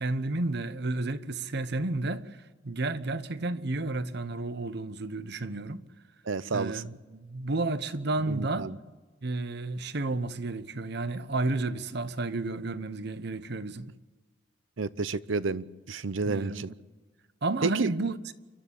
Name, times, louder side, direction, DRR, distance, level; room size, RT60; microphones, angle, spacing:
voice 1, 0.0-5.8 6.5-8.7 9.2-13.9 16.2-16.7 17.4-18.3, right 2 dB, 60° right, 1.0 m, -32 dB
voice 2, 6.3-6.8 8.3-8.7 14.8-16.7 17.6-17.9, right 3 dB, 85° right, 0.7 m, -30 dB
28.5 x 13.0 x 8.3 m
head